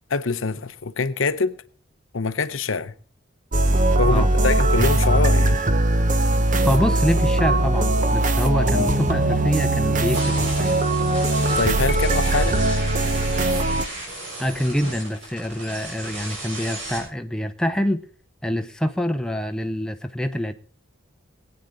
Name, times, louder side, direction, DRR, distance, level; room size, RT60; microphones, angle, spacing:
voice 1, 0.1-1.6 2.1-2.9 4.0-5.6 11.6-12.6, left 4 dB, 80° left, 0.8 m, -24 dB
sound 1, 3.5-13.8, right 1 dB, 40° right, 0.9 m, -20 dB
voice 2, 6.6-10.8 14.4-18.0 18.4-20.5, equal, 5° left, 0.7 m, -25 dB
sound 2, 10.1-17.0, right 1 dB, 70° right, 6.6 m, -34 dB
22.5 x 9.0 x 3.8 m
head